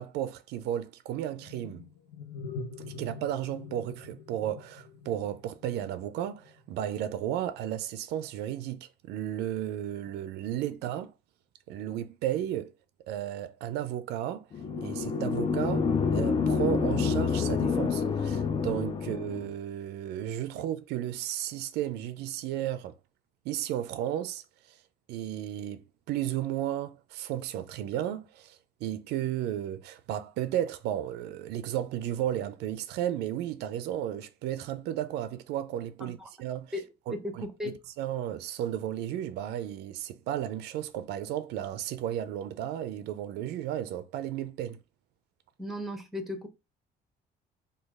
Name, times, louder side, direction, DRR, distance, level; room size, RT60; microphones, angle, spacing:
voice 1, 0.0-1.9 2.8-11.1 11.7-12.7 13.1-14.4 14.8-22.9 23.5-24.8 25.1-36.7 37.1-44.8, right 11 dB, 80° right, 0.4 m, -34 dB
sound 1, 1.3-6.6, left 4 dB, 85° left, 0.7 m, -44 dB
sound 2, 14.5-19.5, left 5 dB, 30° left, 0.4 m, -28 dB
voice 2, 37.1-37.8 45.6-46.5, left 1 dB, ahead, 0.7 m, -36 dB
3.1 x 2.3 x 3.4 m
cardioid pair, 110°, 17 cm